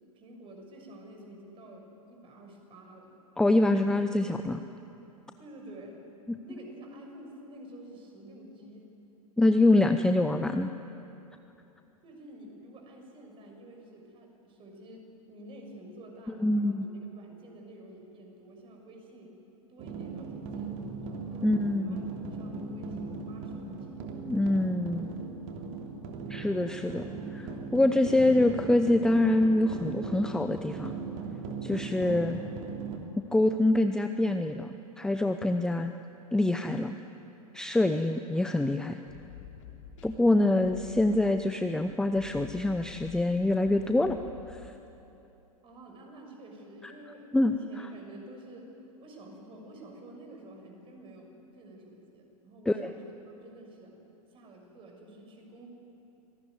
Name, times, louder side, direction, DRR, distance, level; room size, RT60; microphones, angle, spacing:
voice 1, 0.1-3.2 4.2-4.5 5.4-6.0 6.5-8.9 12.0-19.3 19.7-24.1 45.6-48.7 49.0-54.0 54.3-55.7, right 1 dB, 30° right, 2 dB, 6.5 m, -49 dB
voice 2, 3.4-4.6 6.3-6.4 9.4-10.7 16.4-16.9 21.4-22.0 24.3-25.1 26.3-31.0 31.6-32.4 33.2-35.9 36.3-36.9 37.5-39.0 40.0-44.2 44.5-44.7 47.3-47.9 52.7-52.9, left 2 dB, 5° left, 8 dB, 0.7 m, -25 dB
sound 1, 19.8-33.0, right 4 dB, 45° right, 3.3 m, -38 dB
sound 2, 38.8-44.8, left 9 dB, 55° left, 3.4 m, -48 dB
26.5 x 19.0 x 9.7 m, 2.9 s
figure-of-eight pair, 95°, 19 cm